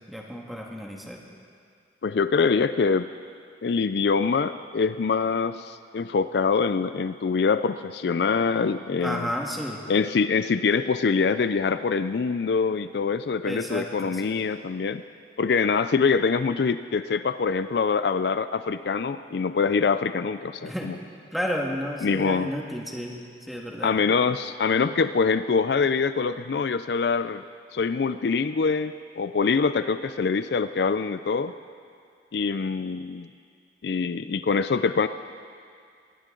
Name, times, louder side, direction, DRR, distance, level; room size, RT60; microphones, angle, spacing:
voice 1, 0.1-1.2 9.0-9.8 13.4-14.4 20.6-20.9 21.3-23.2 23.5-23.9, equal, ahead, -1 dB, 1.7 m, -32 dB
voice 2, 2.0-3.1 3.6-9.3 9.9-15.0 15.4-20.9 22.0-22.5 23.8-27.4 27.7-31.5 32.3-33.3 33.8-35.1, left 5 dB, 70° left, 12 dB, 0.4 m, -24 dB
20.0 x 19.0 x 3.9 m, 2.2 s
head